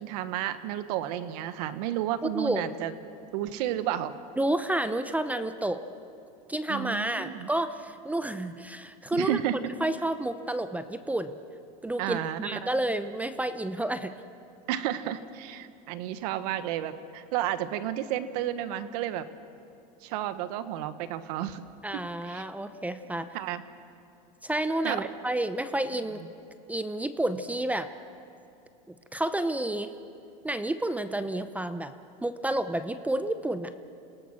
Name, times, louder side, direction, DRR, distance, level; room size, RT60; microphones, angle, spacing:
voice 1, 0.0-2.9 3.3-4.1 6.7-7.5 9.1-9.6 12.0-12.6 14.7-19.3 20.0-21.6 21.9-22.4 23.3-23.6 24.8-25.1, right 12 dB, 70° right, 12 dB, 1.2 m, -32 dB
voice 2, 2.2-2.6 4.4-5.8 6.5-9.4 9.8-11.4 11.8-14.1 21.8-23.3 24.4-26.2 26.7-27.9 28.9-29.9 30.4-31.9 32.2-33.7, right 1 dB, 5° right, 11 dB, 0.7 m, -30 dB
28.0 x 18.0 x 6.3 m, 2.6 s
supercardioid pair, 125°, 21 cm